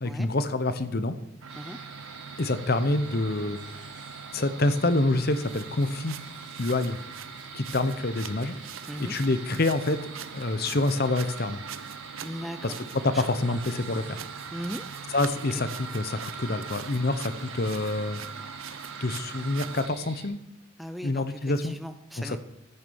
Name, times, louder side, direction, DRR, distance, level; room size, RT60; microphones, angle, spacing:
voice 1, 0.0-1.1 2.4-3.6 4.3-6.2 6.6-7.0 7.5-8.5 9.0-10.0 10.3-11.6 12.6-12.7 13.0-14.2 15.1-18.2 19.0-20.4 21.0-21.7 22.2-22.4, left 2 dB, 50° left, 11 dB, 0.8 m, -27 dB
sound 1, 1.4-19.9, right 7 dB, 80° right, 0.7 m, -41 dB
sound 2, 1.5-20.3, right 3 dB, 40° right, 4.3 m, -47 dB
voice 2, 12.2-12.8 13.1-13.6 14.5-14.9 15.5-15.6 20.8-22.4, equal, ahead, 9 dB, 0.4 m, -38 dB
14.0 x 6.7 x 7.0 m, 0.80 s
head